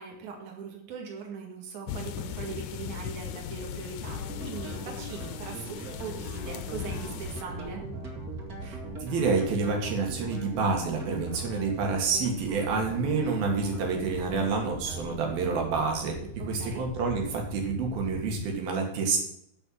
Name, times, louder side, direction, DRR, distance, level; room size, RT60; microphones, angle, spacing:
voice 1, 0.0-7.9 16.4-16.9, right 5 dB, 55° right, 1 dB, 3.0 m, -40 dB
sound 1, 1.9-7.4, left 9 dB, 85° left, 1.7 m, -38 dB
sound 2, 4.0-15.8, right 2 dB, 30° right, 1.9 m, -42 dB
sound 3, 6.8-18.5, right 3 dB, 70° right, 2.4 m, -41 dB
voice 2, 8.6-16.2 16.5-19.2, right 4 dB, 90° right, 1 dB, 3.8 m, -28 dB
12.5 x 4.5 x 7.7 m, 0.71 s
omnidirectional pair, 4.1 m